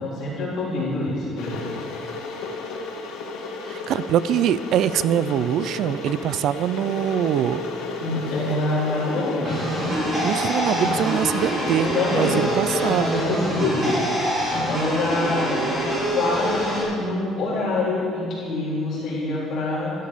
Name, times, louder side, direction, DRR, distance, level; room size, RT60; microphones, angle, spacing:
voice 1, 0.0-1.7 8.0-9.6 11.9-14.0 14.3-15.6 16.1-19.9, left 2 dB, 50° left, -7 dB, 3.7 m, -26 dB
Water / Boiling, 1.4-12.6, left 3 dB, 80° left, 1.9 m, -33 dB
voice 2, 3.7-7.6 10.2-13.2, right 10 dB, 55° right, 16 dB, 0.4 m, -23 dB
sound 1, 9.5-16.8, equal, 25° right, 3.4 m, -25 dB
Trumpet, 9.5-16.3, right 3 dB, 80° right, 3.3 m, -39 dB
12.5 x 12.0 x 5.1 m, 2.3 s
cardioid pair, 170°, 0 cm